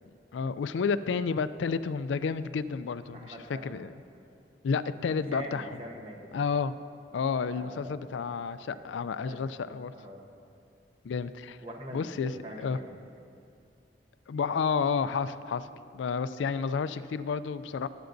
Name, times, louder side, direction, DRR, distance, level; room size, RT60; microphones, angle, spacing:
voice 1, 0.3-3.9 4.6-5.8 6.3-6.7 7.1-9.9 11.0-11.6 11.9-12.8 14.3-15.7 15.9-17.9, left 5 dB, 90° left, 14 dB, 0.3 m, -31 dB
voice 2, 3.1-3.8 5.1-6.3 7.5-8.0 8.7-8.9 9.2-10.3 11.6-13.0, right 1 dB, 30° right, 0 dB, 1.0 m, -44 dB
19.5 x 8.0 x 2.6 m, 2.5 s
head